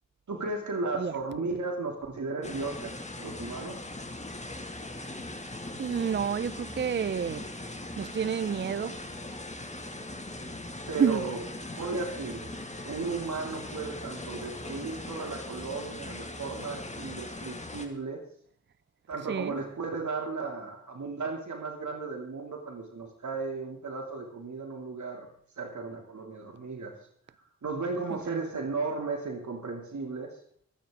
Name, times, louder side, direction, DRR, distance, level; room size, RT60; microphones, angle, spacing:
voice 1, 0.3-3.7 10.9-11.4 11.8-18.2 19.1-25.3 25.6-26.9 27.6-30.4, right 3 dB, 70° right, 2.9 m, -35 dB
sound 1, 2.4-17.9, left 2 dB, 25° left, 2.4 m, -40 dB
voice 2, 5.8-7.5 8.0-9.1 11.0-11.3 19.3-19.6 28.1-28.4, right 7 dB, 40° right, 0.5 m, -29 dB
26.0 x 9.1 x 3.8 m
wide cardioid pair, 70°, 30 cm